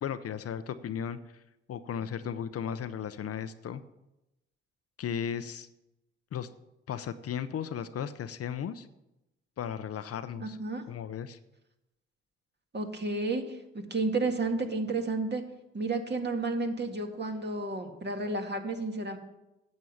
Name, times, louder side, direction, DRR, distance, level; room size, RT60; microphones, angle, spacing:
voice 1, 0.0-1.2 1.7-3.8 5.0-5.7 6.3-6.5 6.9-8.9 9.6-10.6 10.9-11.4, left 8 dB, 55° left, 12 dB, 0.7 m, -35 dB
voice 2, 10.4-10.8 12.7-15.4 15.7-19.2, right 3 dB, 35° right, 4 dB, 1.9 m, -31 dB
9.4 x 7.4 x 7.2 m, 0.92 s
hypercardioid pair, 45°, 29 cm